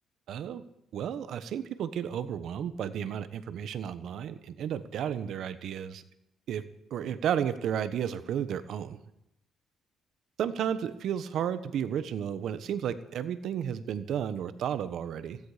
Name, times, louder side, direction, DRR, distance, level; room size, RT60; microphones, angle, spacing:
voice 1, 0.3-0.6 0.9-6.0 6.5-6.6 6.9-9.0 10.4-15.4, right 9 dB, 75° right, 13 dB, 1.2 m, -32 dB
16.5 x 16.0 x 5.1 m, 0.82 s
cardioid pair, 90°, 0 cm